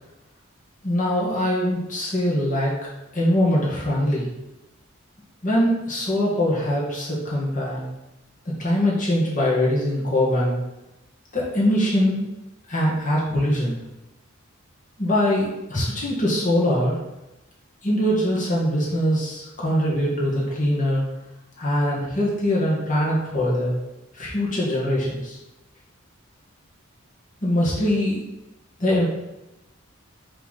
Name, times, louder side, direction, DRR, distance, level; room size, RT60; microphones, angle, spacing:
voice 1, 0.8-2.7 3.1-4.3 5.4-7.8 8.5-10.6 11.3-12.3 12.7-13.8 15.0-17.0 17.8-21.0 21.6-23.8 24.1-25.4 27.4-28.2 28.8-29.0, left 1 dB, 40° left, -5 dB, 2.0 m, -22 dB
5.7 x 3.5 x 5.8 m, 0.95 s
head